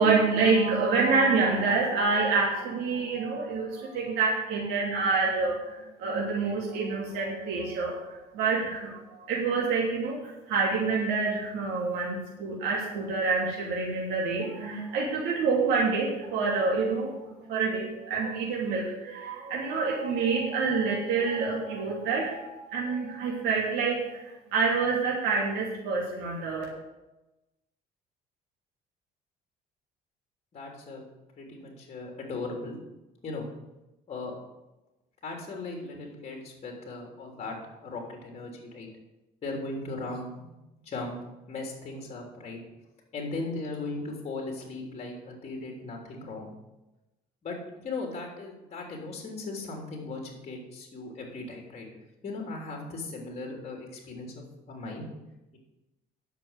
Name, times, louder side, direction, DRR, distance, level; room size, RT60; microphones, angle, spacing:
voice 1, 0.0-10.2 10.5-26.6, right 4 dB, 85° right, -4 dB, 3.2 m, -27 dB
voice 2, 30.5-31.0 31.4-32.8 33.2-33.5 34.1-34.3 35.2-37.6 37.8-38.9 39.4-40.5 40.8-41.2 41.5-42.6 43.1-46.5 47.4-51.9 52.2-54.3 54.7-55.0, left 3 dB, 40° left, 0 dB, 3.3 m, -37 dB
10.5 x 6.9 x 8.0 m, 1.0 s
cardioid pair, 110°, 17 cm